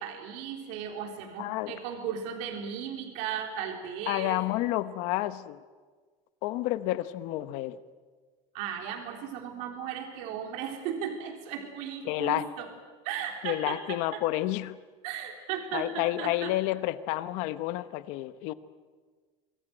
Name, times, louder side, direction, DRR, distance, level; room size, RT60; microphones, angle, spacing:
voice 1, 0.0-4.4 8.5-12.7 13.0-14.2 15.0-16.5, right 8 dB, 55° right, 3 dB, 3.8 m, -36 dB
voice 2, 1.4-1.8 4.1-5.6 6.4-7.8 12.0-12.5 13.4-14.8 15.7-18.5, left 16 dB, 55° left, 14 dB, 1.0 m, -30 dB
25.5 x 21.5 x 7.9 m, 1.5 s
cardioid pair, 175°, 14 cm